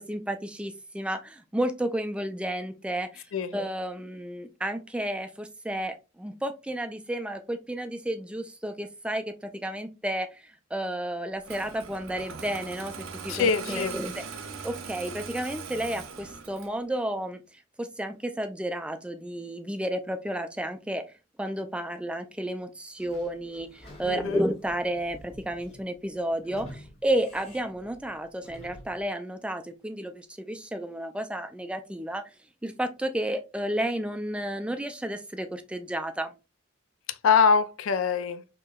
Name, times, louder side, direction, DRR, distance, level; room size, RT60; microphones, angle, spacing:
voice 1, 0.0-3.3 3.5-12.9 13.2-14.2 14.6-21.0 21.4-32.2 32.6-36.3, right 1 dB, 5° right, 0.3 m, -32 dB
Engine starting, 11.4-16.8, right 5 dB, 80° right, 0.7 m, -40 dB
voice 2, 13.3-14.0 24.0-24.4 37.1-38.4, left 6 dB, 75° left, 0.4 m, -24 dB
Sliding door / Squeak, 23.0-29.1, equal, 30° left, 1.2 m, -49 dB
4.5 x 2.9 x 2.3 m
head